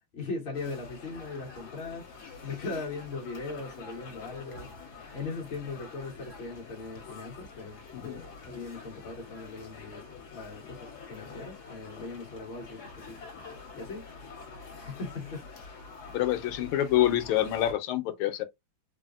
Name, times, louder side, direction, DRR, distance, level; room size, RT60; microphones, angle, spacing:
voice 1, 0.1-2.0 2.4-4.7 5.1-10.0 10.3-13.2 13.7-14.0 14.8-15.8, left 3 dB, 35° left, 1.2 m, -39 dB
sound 1, 0.5-17.7, left 4 dB, 55° left, 1.5 m, -46 dB
voice 2, 16.1-18.4, left 13 dB, 85° left, 1.4 m, -27 dB
4.0 x 2.0 x 2.3 m
omnidirectional pair, 2.3 m